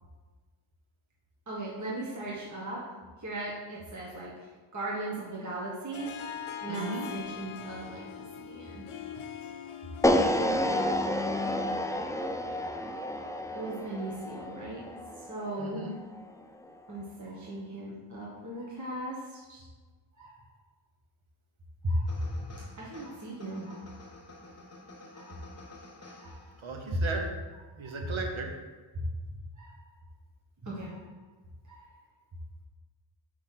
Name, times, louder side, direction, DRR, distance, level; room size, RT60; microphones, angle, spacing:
voice 1, 1.5-2.8 3.2-4.3 4.7-6.1 6.6-8.8 10.7-11.7 13.5-14.8 15.3-15.9 16.9-19.6 20.2-20.4 21.8-22.1 22.4-22.5 22.8-23.9 25.1-25.3 26.2-26.4 26.9-27.0 27.8-28.0 29.6-29.8 30.6-31.0 31.7-31.8, right 1 dB, 35° right, -6 dB, 1.3 m, -37 dB
Harp, 5.9-11.4, left 8 dB, 75° left, 0.7 m, -42 dB
voice 2, 6.7-7.1 7.5-7.6 15.6-16.0 26.6-27.3 27.7-28.5, right 4 dB, 70° right, 2 dB, 1.1 m, -36 dB
sound 1, 10.0-16.2, left 1 dB, 10° left, 0.3 m, -30 dB
sound 2, 22.1-26.8, left 2 dB, 30° left, 1.1 m, -51 dB
4.8 x 4.1 x 5.7 m, 1.3 s
wide cardioid pair, 65°, 49 cm